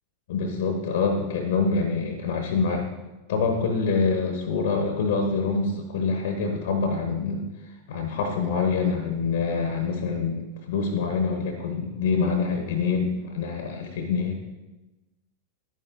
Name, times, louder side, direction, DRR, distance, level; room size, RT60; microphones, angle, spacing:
voice 1, 0.3-2.9 3.3-7.4 7.9-14.4, left 4 dB, 60° left, 4 dB, 1.0 m, -25 dB
11.5 x 9.3 x 2.5 m, 1.1 s
figure-of-eight pair, 90°, 0 cm